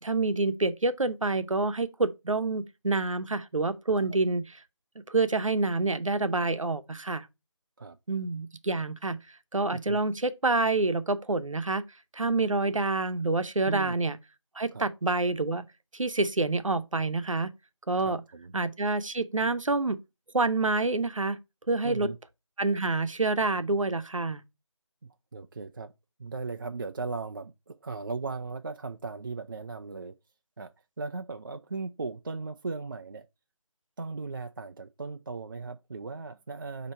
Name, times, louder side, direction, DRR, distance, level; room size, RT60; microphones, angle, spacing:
voice 1, 0.0-4.6 5.1-7.3 8.1-9.2 9.5-11.8 12.1-14.2 14.6-15.6 15.9-17.5 17.9-18.2 18.5-20.0 20.3-21.4 21.7-22.1 22.6-24.4, right 3 dB, 85° right, 0.8 m, -27 dB
voice 2, 13.7-14.0 14.7-14.8 18.0-18.5 21.8-22.2 25.0-25.9 26.2-30.1 30.6-30.7 31.0-33.3 34.0-36.9, right 4 dB, 40° right, 0.4 m, -37 dB
8.6 x 2.9 x 4.5 m
figure-of-eight pair, 160°, 16 cm